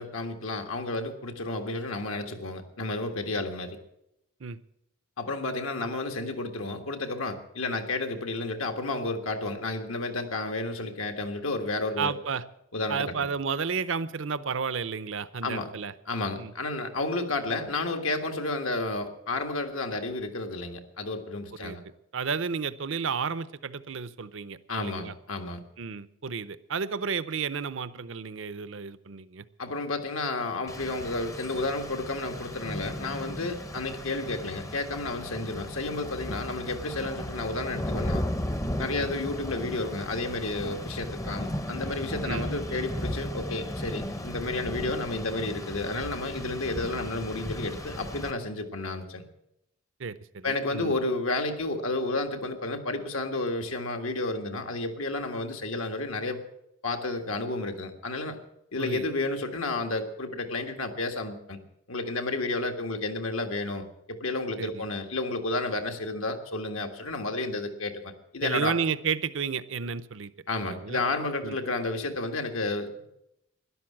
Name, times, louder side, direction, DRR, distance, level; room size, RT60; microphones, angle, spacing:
voice 1, 0.0-3.8 5.2-12.1 12.7-13.3 15.4-15.7 16.1-21.8 24.7-25.6 29.6-38.2 38.8-49.2 50.4-56.4 56.8-58.4 58.7-61.6 61.9-68.7 70.5-73.1, left 2 dB, 75° left, 4 dB, 1.8 m, -31 dB
voice 2, 12.0-12.4 12.9-15.9 16.4-16.5 21.6-21.8 22.1-25.1 25.8-29.4 39.0-39.1 42.2-42.5 50.0-50.9 58.8-59.1 64.6-64.9 68.4-70.3 70.6-71.0 71.4-71.6, right 6 dB, 60° right, 15 dB, 0.7 m, -32 dB
Rain, 30.7-48.3, left 1 dB, 15° left, 0.7 m, -36 dB
12.5 x 11.5 x 7.4 m, 0.82 s
head